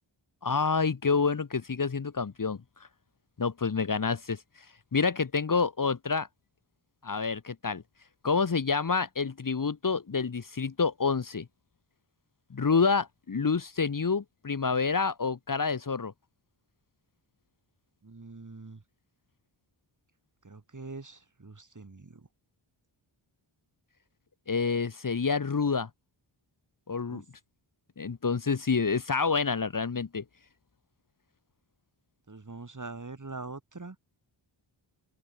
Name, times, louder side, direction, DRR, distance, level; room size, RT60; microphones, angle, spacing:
voice 1, 0.4-2.6 3.4-4.4 4.9-6.3 7.0-7.8 8.2-11.5 12.5-16.1 24.5-25.9 26.9-27.2 28.0-30.2, left 5 dB, 40° left, 1.1 m, -28 dB
voice 2, 18.0-18.8 20.4-22.3 27.1-27.2 32.3-34.0, right 3 dB, 35° right, 4.1 m, -43 dB
open air
wide cardioid pair, 90°, 50 cm